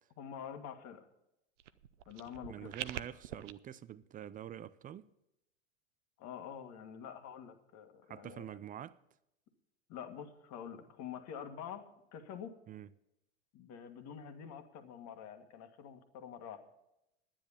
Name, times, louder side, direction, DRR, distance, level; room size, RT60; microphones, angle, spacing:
voice 1, 0.2-1.0 2.0-2.7 6.2-8.5 9.9-11.8 12.1-12.6 13.5-16.6, left 8 dB, 50° left, 1.8 m, -47 dB
sound 1, 1.6-3.5, right 12 dB, 80° right, 0.7 m, -44 dB
voice 2, 2.5-5.1 8.1-9.0 12.7-12.9, right 10 dB, 25° right, 0.5 m, -46 dB
10.0 x 10.0 x 7.1 m
hypercardioid pair, 90°, 35 cm